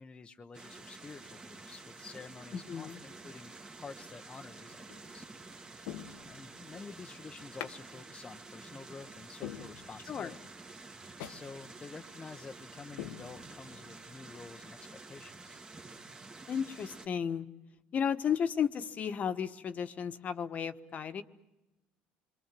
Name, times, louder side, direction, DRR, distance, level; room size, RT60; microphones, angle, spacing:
voice 1, 0.0-5.3 6.2-10.4 11.3-15.6, left 4 dB, 25° left, 4 dB, 1.0 m, -49 dB
sound 1, 0.5-17.1, right 3 dB, 20° right, 1.8 m, -50 dB
voice 2, 2.5-3.0 10.1-10.3 16.5-17.5 17.9-21.2, left 7 dB, 45° left, 10 dB, 1.4 m, -33 dB
sound 2, 4.8-5.2 5.8-6.7 7.6-7.8 8.2-8.3 8.8-8.9 9.4-10.3 10.6-10.7 11.2-11.5 11.8-11.9 12.4-12.6 13.0-13.9 14.2-14.3, left 12 dB, 85° left, 1.3 m, -45 dB
27.5 x 23.5 x 7.7 m, 0.98 s
supercardioid pair, 95°, 4 cm